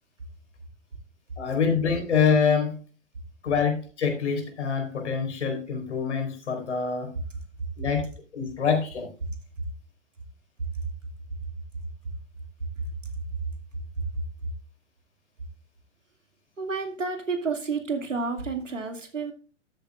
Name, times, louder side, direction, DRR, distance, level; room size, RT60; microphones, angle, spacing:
voice 1, 1.4-2.7 3.4-7.1 7.8-8.0 8.3-9.1, left 6 dB, 65° left, 3 dB, 4.3 m, -25 dB
voice 2, 16.6-19.3, right 4 dB, 80° right, 5 dB, 2.3 m, -30 dB
13.0 x 8.9 x 2.4 m, 0.38 s
figure-of-eight pair, 115°, 37 cm